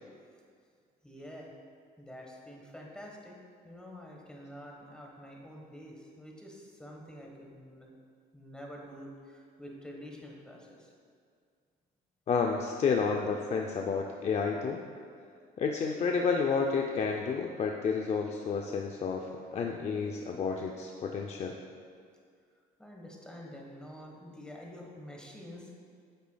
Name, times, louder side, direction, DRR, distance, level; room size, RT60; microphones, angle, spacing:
voice 1, 1.0-1.5 2.0-3.4 3.6-7.9 8.3-10.9 22.8-25.7, equal, 5° left, -1 dB, 1.3 m, -47 dB
voice 2, 12.3-14.8 15.6-21.6, left 5 dB, 40° left, 2 dB, 0.5 m, -30 dB
9.6 x 6.8 x 2.3 m, 2.2 s
cardioid pair, 110°, 17 cm